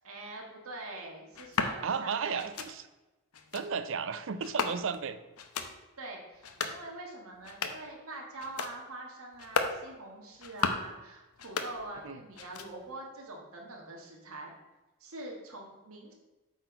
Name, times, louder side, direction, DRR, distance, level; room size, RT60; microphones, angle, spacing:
voice 1, 0.0-2.4 6.0-14.5 15.0-16.1, right 2 dB, 75° right, 0 dB, 1.6 m, -44 dB
sound 1, 1.3-1.8 2.4-2.7 3.3-3.6 4.4-5.0 5.4-5.7 6.3-6.8 7.3-7.9 8.4-8.7 9.3-9.8 10.3-10.9 11.3-12.1 12.3-12.9, left 5 dB, 80° left, 0.7 m, -35 dB
voice 2, 1.8-2.8 3.5-5.2 12.0-12.2, right 6 dB, 60° right, 12 dB, 0.5 m, -33 dB
8.0 x 4.5 x 5.1 m, 1.1 s
head